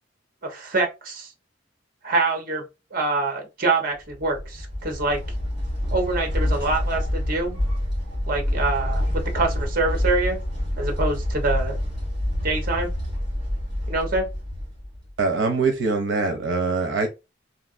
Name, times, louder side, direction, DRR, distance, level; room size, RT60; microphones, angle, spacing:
voice 1, 0.4-1.3 2.0-2.6 2.9-5.2 5.9-7.6 8.3-10.4 10.8-11.8 12.4-12.9 13.9-14.3, right 3 dB, 50° right, 1.0 m, -25 dB
sound 1, 4.1-15.1, left 1 dB, 30° right, 2.1 m, -27 dB
voice 2, 15.2-17.1, right 3 dB, 85° right, 0.6 m, -23 dB
3.2 x 2.8 x 2.5 m
head